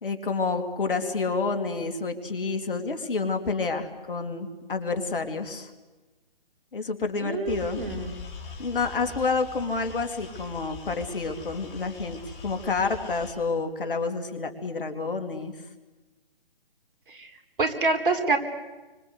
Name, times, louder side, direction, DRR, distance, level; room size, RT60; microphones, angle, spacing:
voice 1, 0.0-5.7 6.7-7.9 8.6-15.5, left 4 dB, 65° left, 6 dB, 3.2 m, -29 dB
voice 2, 7.2-8.1 17.1-17.3 17.6-18.4, right 3 dB, 65° right, 6 dB, 4.2 m, -26 dB
sound 1, 7.5-13.3, left 4 dB, 20° left, 5.3 m, -42 dB
27.5 x 25.0 x 8.2 m, 1.2 s
figure-of-eight pair, 140°, 29 cm